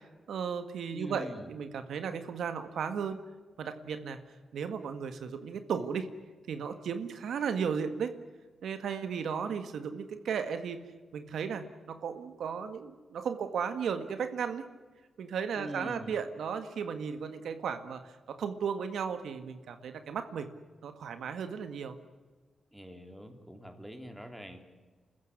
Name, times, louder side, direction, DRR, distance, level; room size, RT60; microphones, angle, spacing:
voice 1, 0.3-3.2 3.6-4.2 4.5-6.1 6.5-8.1 8.6-10.8 11.1-14.7 15.2-20.5 20.8-22.0, right 6 dB, 85° right, 9 dB, 1.8 m, -35 dB
voice 2, 0.9-1.5 15.5-16.2 22.7-24.6, equal, 5° right, 6 dB, 3.3 m, -43 dB
27.0 x 15.0 x 10.0 m, 1.4 s
cardioid pair, 105°, 0 cm